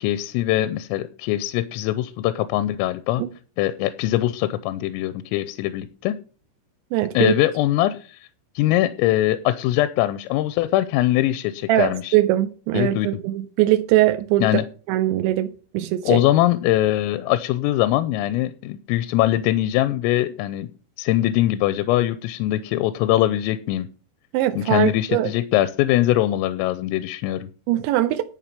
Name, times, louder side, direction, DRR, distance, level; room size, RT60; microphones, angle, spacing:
voice 1, 0.0-3.2 3.6-6.2 7.2-8.3 8.6-12.2 12.7-13.1 14.4-14.7 16.1-20.7 21.0-23.9 24.6-27.5, left 14 dB, 90° left, 3.3 m, -22 dB
voice 2, 6.9-7.3 11.7-14.6 14.9-16.2 24.3-25.3 27.7-28.2, right 15 dB, 85° right, 2.6 m, -21 dB
11.0 x 7.3 x 5.8 m
omnidirectional pair, 5.9 m